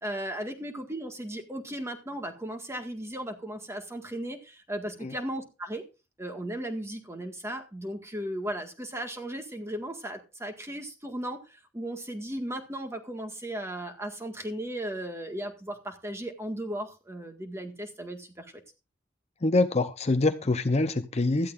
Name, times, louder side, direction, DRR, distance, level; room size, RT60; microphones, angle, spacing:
voice 1, 0.0-5.8 6.2-18.5, right 1 dB, 15° right, 1.8 m, -36 dB
voice 2, 19.4-21.5, left 2 dB, 35° left, 0.7 m, -25 dB
16.5 x 13.0 x 2.5 m
head